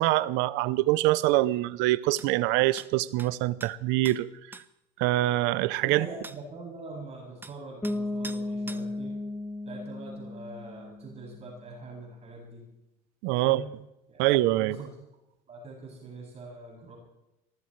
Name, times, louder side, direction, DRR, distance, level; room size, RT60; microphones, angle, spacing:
voice 1, 0.0-4.3 5.0-6.1 13.2-13.6 14.2-14.8, right 17 dB, 70° right, 18 dB, 0.8 m, -24 dB
sound 1, 2.2-2.3 2.8-2.9 3.2-3.3 3.6-3.7 4.0-4.2 4.5-4.6 6.2-6.4 7.4-7.5 7.8-8.0 8.2-8.4 8.7-8.8, right 2 dB, 10° right, 0.8 m, -43 dB
voice 2, 5.8-9.2 9.7-12.6 13.3-13.7 14.1-14.2 14.6-15.0 15.5-17.0, right 3 dB, 35° right, -2 dB, 7.4 m, -43 dB
Bass guitar, 7.8-11.5, left 2 dB, 10° left, 2.2 m, -35 dB
22.0 x 18.5 x 3.3 m, 0.88 s
supercardioid pair, 100°, 19 cm